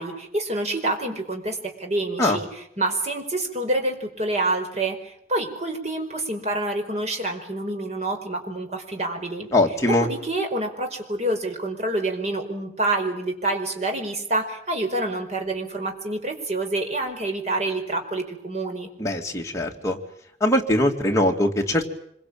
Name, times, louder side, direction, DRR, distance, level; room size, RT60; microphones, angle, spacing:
voice 1, 0.0-2.5 2.8-9.5 10.0-18.9, right 2 dB, 40° right, 4 dB, 5.0 m, -27 dB
voice 2, 9.5-10.1 19.0-20.0 20.4-21.9, left 1 dB, 15° left, 0 dB, 2.7 m, -21 dB
26.0 x 23.5 x 8.9 m, 0.72 s
head